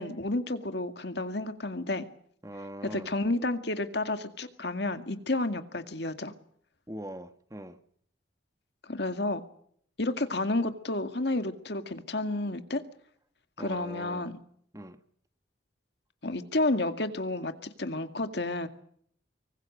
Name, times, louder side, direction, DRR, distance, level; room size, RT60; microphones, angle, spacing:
voice 1, 0.0-2.0 2.8-6.3 8.8-9.4 10.0-12.8 13.6-14.4 16.2-18.7, left 2 dB, 60° left, 8 dB, 2.1 m, -31 dB
voice 2, 2.4-3.1 6.9-7.8 13.6-14.3 14.7-15.0, right 1 dB, 15° right, 9 dB, 1.4 m, -42 dB
25.0 x 24.0 x 6.6 m, 0.65 s
head